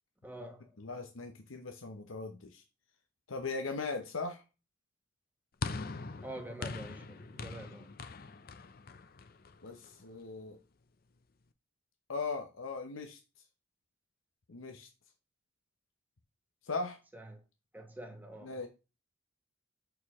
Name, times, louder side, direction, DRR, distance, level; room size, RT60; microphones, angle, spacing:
voice 1, 0.2-0.7 6.2-7.9 17.1-17.4 17.7-18.5, right 1 dB, 10° right, 1.1 m, -46 dB
voice 2, 0.8-2.6 3.3-4.4 9.6-10.6 12.1-13.2 14.5-14.9 16.6-17.0 18.4-18.7, left 4 dB, 90° left, 0.8 m, -39 dB
sound 1, 5.6-10.0, left 4 dB, 50° left, 0.5 m, -42 dB
6.5 x 4.6 x 3.5 m
head